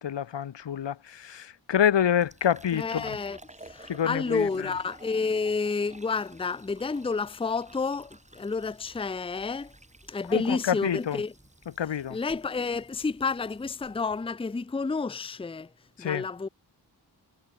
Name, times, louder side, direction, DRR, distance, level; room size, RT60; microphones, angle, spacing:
voice 1, 0.0-3.2 3.9-4.7 10.3-11.2 11.8-12.2 16.0-16.3, left 9 dB, 85° left, 1.2 m, -27 dB
Fill (with liquid), 1.8-14.2, right 2 dB, 15° right, 5.8 m, -53 dB
voice 2, 2.7-3.4 3.6-9.7 10.1-11.3 12.1-15.7 16.0-16.5, left 4 dB, 15° left, 0.5 m, -30 dB
wide cardioid pair, 140°, 42 cm